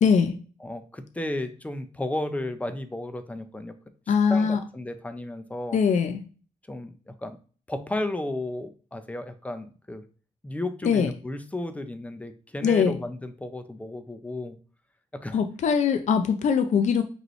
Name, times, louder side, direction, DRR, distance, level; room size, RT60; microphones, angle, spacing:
voice 1, 0.0-0.4 4.1-4.6 5.7-6.2 10.8-11.1 12.6-12.9 15.3-17.0, left 6 dB, 55° left, 7 dB, 0.5 m, -21 dB
voice 2, 0.6-3.8 4.1-5.8 6.7-7.4 7.7-10.0 10.4-14.6 15.1-15.4, left 1 dB, 10° left, 9 dB, 0.5 m, -34 dB
5.1 x 3.1 x 3.1 m, 0.39 s
cardioid pair, 105°, 14 cm